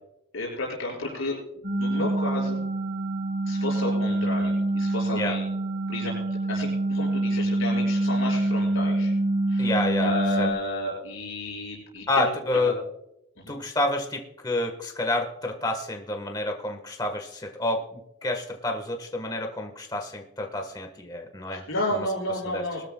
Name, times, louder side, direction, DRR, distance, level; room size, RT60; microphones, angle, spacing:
voice 1, 0.3-2.6 3.5-5.5 5.9-6.1 6.5-9.1 9.5-12.3 12.5-12.7 13.4-13.6 21.5-22.8, left 2 dB, 65° left, -4 dB, 5.3 m, -32 dB
sound 1, 1.6-10.5, right 2 dB, 40° right, 3.4 m, -26 dB
voice 2, 9.6-10.5 12.1-12.8 13.5-21.6 21.9-22.0 22.4-22.6, left 2 dB, 20° left, 4 dB, 1.2 m, -29 dB
20.5 x 13.5 x 2.2 m, 0.85 s
head